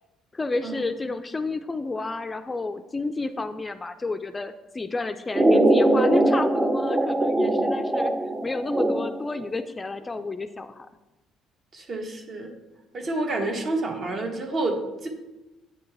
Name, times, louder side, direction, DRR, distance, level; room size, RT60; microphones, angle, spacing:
voice 1, 0.3-8.1 8.4-10.9, left 3 dB, 20° left, 9 dB, 0.3 m, -30 dB
sound 1, 5.3-9.4, right 1 dB, 20° right, 0.6 m, -21 dB
voice 2, 11.7-12.5 12.9-15.1, right 2 dB, 45° right, 3 dB, 1.2 m, -29 dB
8.6 x 4.1 x 3.4 m, 1.0 s
cardioid pair, 90°, 0 cm